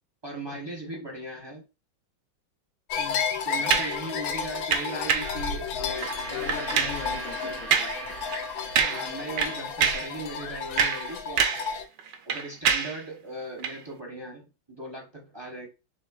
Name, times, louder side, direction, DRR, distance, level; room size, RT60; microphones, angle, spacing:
voice 1, 0.2-1.6 3.4-6.1 7.4-7.6 8.8-11.7 12.3-15.7, right 1 dB, 25° right, 0 dB, 0.6 m, -38 dB
sound 1, 2.9-11.8, left 6 dB, 85° left, 1.5 m, -32 dB
voice 2, 3.0-3.3 3.7-3.8 4.9-5.4 5.7-7.5 7.8-7.9, left 7 dB, 60° left, 5 dB, 1.2 m, -40 dB
sound 2, 3.7-4.0 4.7-5.4 5.9-6.2 6.5-7.0 7.7-8.0 8.3-8.4 8.8-9.1 9.4-10.1 10.6-11.7 12.0-13.0 13.6-13.8, right 7 dB, 75° right, 1.2 m, -26 dB
Gong, 5.7-10.3, right 3 dB, 50° right, 0.8 m, -41 dB
5.2 x 3.3 x 2.3 m, 0.27 s
omnidirectional pair, 2.1 m